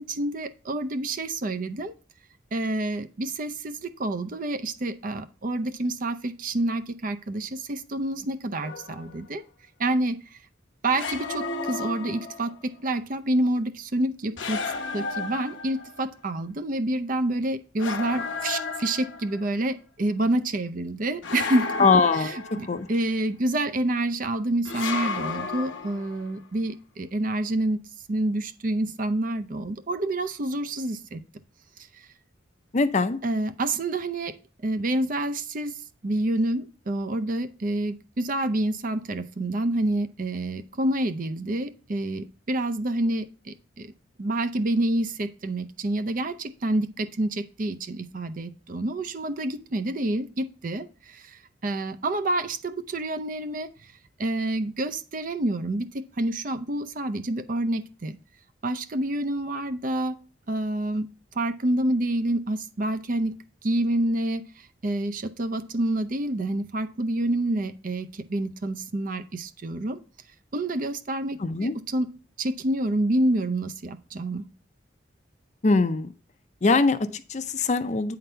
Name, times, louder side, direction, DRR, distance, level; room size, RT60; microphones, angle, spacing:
voice 1, 0.0-1.9 2.5-9.4 9.8-10.4 10.8-21.9 22.1-27.8 28.1-31.2 31.9-32.1 33.2-43.9 44.2-53.9 54.2-58.2 58.6-60.2 60.5-61.1 61.3-70.0 70.5-72.1 72.4-74.5, right 1 dB, 45° right, 10 dB, 0.6 m, -28 dB
sound 1, 8.6-9.2 10.9-12.6 14.4-16.0 17.8-19.5 21.2-23.0 24.6-26.3, left 4 dB, 85° left, 1.1 m, -33 dB
voice 2, 21.8-22.4 22.7-22.9 32.7-33.2 71.4-71.7 75.6-76.1 76.6-78.2, left 4 dB, 40° left, 11 dB, 0.5 m, -22 dB
8.9 x 3.9 x 5.5 m, 0.36 s
head